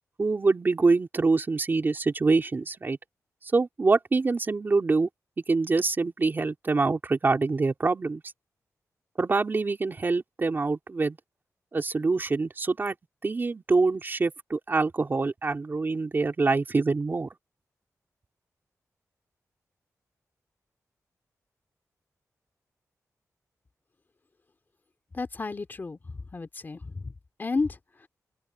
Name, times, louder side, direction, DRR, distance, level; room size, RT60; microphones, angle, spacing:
voice 1, 0.2-3.0 3.4-5.1 5.5-8.2 9.2-11.2 11.7-13.0 13.2-17.3, right 3 dB, 35° right, 3.2 m, -25 dB
voice 2, 25.1-27.1 27.4-28.1, left 3 dB, 35° left, 2.6 m, -32 dB
open air
wide cardioid pair, 125°, 6 cm